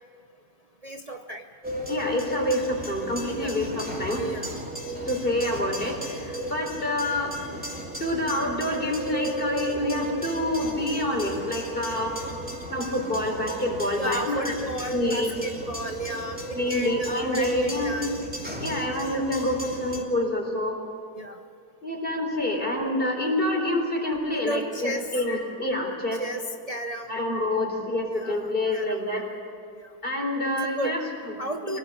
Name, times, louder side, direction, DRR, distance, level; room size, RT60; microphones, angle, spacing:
voice 1, 0.8-1.4 3.3-3.6 4.1-4.6 14.0-18.1 21.1-21.4 24.3-25.1 26.2-27.1 28.1-29.3 29.7-29.9 30.6-31.0 31.4-31.8, right 1 dB, 60° right, 4 dB, 0.4 m, -33 dB
sound 1, 1.6-20.0, equal, 5° right, 2.8 m, -35 dB
voice 2, 1.9-4.2 5.1-7.6 8.0-12.1 12.7-14.5 14.9-15.4 16.5-18.0 18.6-20.8 21.8-26.2 27.1-29.3 30.0-31.3 31.6-31.8, left 1 dB, 25° left, 2 dB, 4.2 m, -27 dB
25.5 x 18.5 x 8.4 m, 2.5 s
omnidirectional pair, 2.2 m